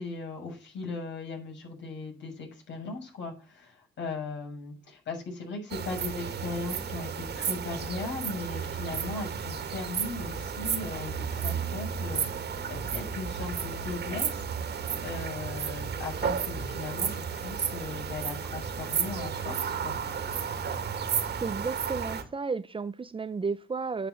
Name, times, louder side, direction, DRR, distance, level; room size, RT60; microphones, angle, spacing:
voice 1, 0.0-14.4 15.0-20.0, left 3 dB, 65° left, 6.4 m, -38 dB
sound 1, 5.7-22.2, right 7 dB, 55° right, 2.2 m, -33 dB
voice 2, 21.4-24.1, right 4 dB, 25° right, 0.7 m, -33 dB
9.9 x 6.0 x 7.5 m
cardioid pair, 90°, 20 cm